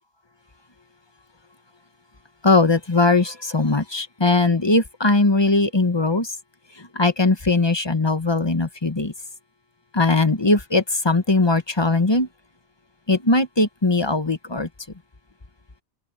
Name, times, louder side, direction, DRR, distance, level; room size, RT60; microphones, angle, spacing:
voice 1, 2.4-6.3 7.0-9.1 10.0-12.3 13.1-14.7, left 3 dB, 25° left, 1.1 m, -19 dB
omnidirectional pair, 1.1 m